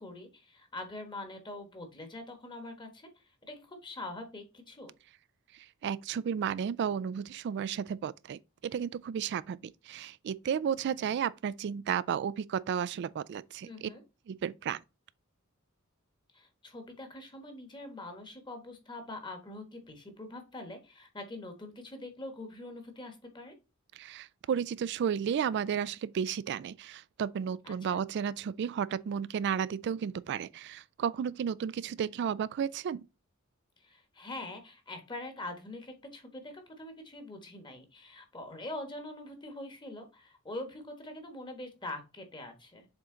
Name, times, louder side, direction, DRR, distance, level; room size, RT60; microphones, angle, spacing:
voice 1, 0.0-4.9 13.6-14.0 16.3-23.5 27.6-28.0 33.8-42.9, left 2 dB, 20° left, 1.3 m, -44 dB
voice 2, 5.5-13.9 14.3-14.8 24.0-33.0, right 8 dB, 55° right, 0.3 m, -33 dB
7.1 x 3.7 x 3.8 m
head